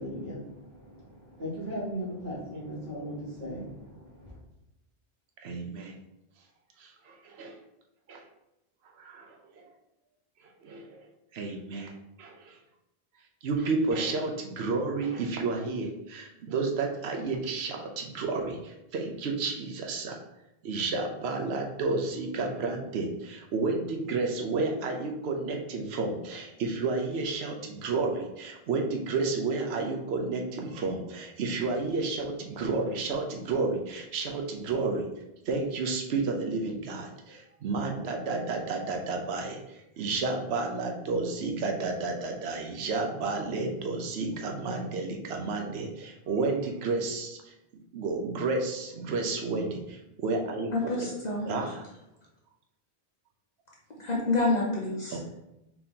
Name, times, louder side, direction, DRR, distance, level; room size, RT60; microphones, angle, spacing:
voice 1, 0.0-4.4, equal, 55° right, -7 dB, 1.9 m, -38 dB
voice 2, 5.4-5.9 6.8-7.6 8.1-8.2 9.0-9.6 10.6-11.0 11.3-12.6 13.4-20.2 20.6-35.0 35.5-47.5 47.9-51.1 51.4-51.8 55.1-55.3, right 3 dB, 85° right, 2 dB, 0.9 m, -31 dB
voice 3, 50.7-51.5 54.0-55.2, left 2 dB, 45° left, -4 dB, 0.8 m, -28 dB
4.4 x 2.8 x 3.6 m, 0.88 s
omnidirectional pair, 1.0 m